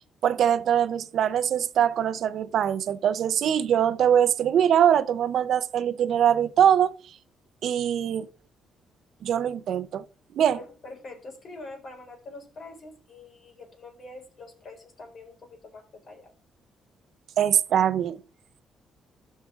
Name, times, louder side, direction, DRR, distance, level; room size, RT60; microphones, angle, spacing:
voice 1, 0.2-6.9 7.6-8.3 9.2-10.0 10.3-10.6 17.4-18.2, right 9 dB, 70° right, 0.5 m, -22 dB
voice 2, 10.5-16.3, left 2 dB, 50° left, 3.8 m, -45 dB
15.5 x 6.3 x 2.4 m
cardioid pair, 90°, 0 cm